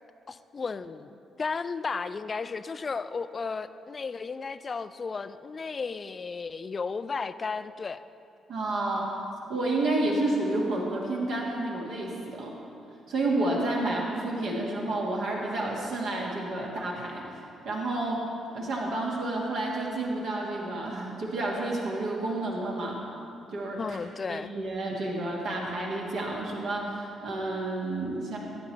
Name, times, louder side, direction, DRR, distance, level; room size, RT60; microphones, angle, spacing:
voice 1, 0.3-8.0 23.8-24.5, left 4 dB, 35° left, 13 dB, 0.3 m, -34 dB
voice 2, 8.5-9.2 9.5-12.5 13.1-17.2 17.7-18.2 18.5-23.0 23.5-24.0 24.3-28.4, right 2 dB, 55° right, -2 dB, 1.8 m, -30 dB
15.5 x 8.8 x 3.3 m, 2.7 s
figure-of-eight pair, 40°, 0 cm